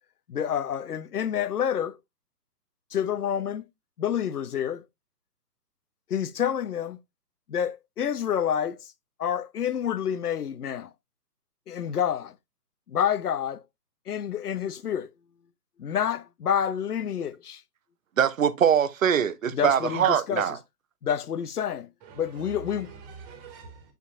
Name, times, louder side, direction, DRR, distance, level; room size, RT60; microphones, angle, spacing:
voice 1, 0.3-2.0 2.9-3.6 4.0-4.8 6.1-7.0 7.5-8.9 9.2-10.9 11.7-12.3 12.9-13.6 14.1-15.1 15.8-17.6 19.5-20.6 21.0-21.9 22.2-22.9, left 9 dB, 65° left, 0.8 m, -28 dB
voice 2, 18.2-20.6, right 8 dB, 50° right, 0.9 m, -23 dB
voice 3, 22.0-23.9, right 5 dB, 25° right, 2.2 m, -45 dB
7.6 x 5.3 x 2.4 m
figure-of-eight pair, 135°, 50 cm